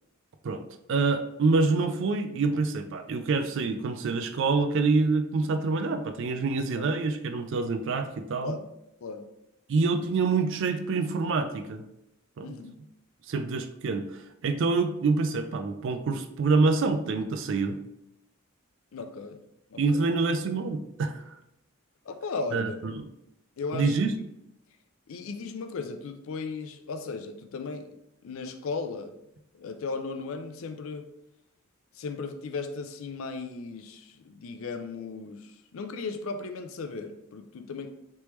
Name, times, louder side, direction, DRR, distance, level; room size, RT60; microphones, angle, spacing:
voice 1, 0.9-8.6 9.7-11.8 12.4-12.5 13.3-14.1 14.4-17.8 19.8-21.2 22.5-23.1 23.7-24.1, right 4 dB, 60° right, 8 dB, 0.3 m, -26 dB
voice 2, 12.4-12.8 18.9-19.4 19.7-20.0 22.1-22.9 23.6-24.0 25.1-27.9 28.2-29.2 29.5-31.1 32.0-37.9, left 4 dB, 70° left, 8 dB, 0.4 m, -36 dB
3.3 x 3.0 x 3.0 m, 0.84 s
head